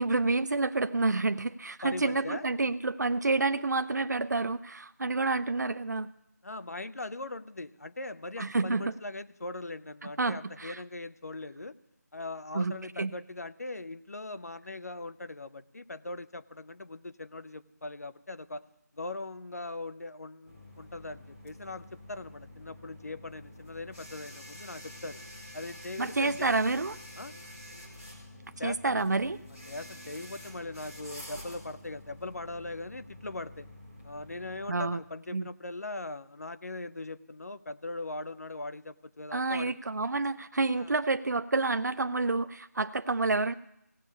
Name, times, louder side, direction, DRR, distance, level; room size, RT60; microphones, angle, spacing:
voice 1, 0.0-6.1 8.4-8.9 10.0-10.8 12.5-13.1 26.0-26.9 28.6-29.4 34.7-35.0 35.3-35.5 39.3-43.5, right 3 dB, 75° right, 12 dB, 0.5 m, -29 dB
voice 2, 1.8-2.5 6.4-11.7 12.1-18.6 18.9-25.2 25.5-26.9 27.2-27.3 28.6-29.0 29.7-33.7 34.0-39.7 40.8-40.9, left 2 dB, 60° left, 13 dB, 0.6 m, -40 dB
sound 1, 20.4-34.9, left 1 dB, 10° left, 1.6 m, -48 dB
16.5 x 7.1 x 8.2 m, 0.80 s
figure-of-eight pair, 175°, 10 cm